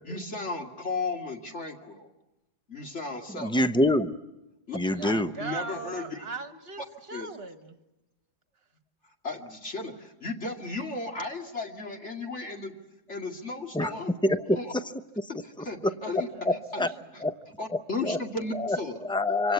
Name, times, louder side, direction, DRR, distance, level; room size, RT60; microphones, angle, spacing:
voice 1, 0.1-2.1 2.7-3.6 4.7-6.3 7.1-7.3 9.2-12.7 13.1-14.1 14.6-14.7 15.4-16.3 16.7-16.9 17.6-19.0, left 3 dB, 45° left, 2 dB, 2.5 m, -35 dB
voice 2, 3.4-4.2 4.7-5.3 13.7-13.9 14.2-14.8 15.2-15.3 15.8-16.9 17.2-17.3 17.7-17.8 18.0-18.2 18.5-19.5, left 1 dB, 5° left, 10 dB, 0.3 m, -26 dB
voice 3, 4.7-7.8 15.6-16.6 16.9-17.3, right 4 dB, 40° right, 8 dB, 1.7 m, -40 dB
26.5 x 25.5 x 8.2 m, 0.96 s
omnidirectional pair, 1.7 m